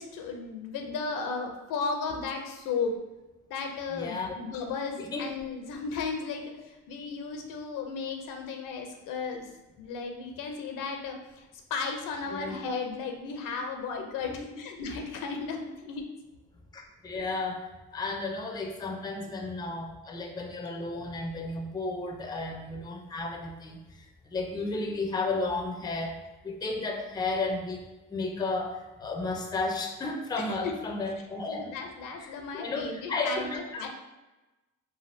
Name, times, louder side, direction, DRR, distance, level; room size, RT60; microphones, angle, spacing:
voice 1, 0.0-2.9 3.5-9.5 9.8-16.0 19.2-19.3 30.3-30.7 31.5-33.9, left 5 dB, 75° left, 4 dB, 0.6 m, -35 dB
voice 2, 3.9-4.3 5.0-5.3 12.3-12.6 14.3-14.5 16.7-31.7 32.2-33.9, left 3 dB, 15° left, 3 dB, 0.4 m, -33 dB
3.3 x 2.2 x 2.5 m, 1.1 s
cardioid pair, 80°, 32 cm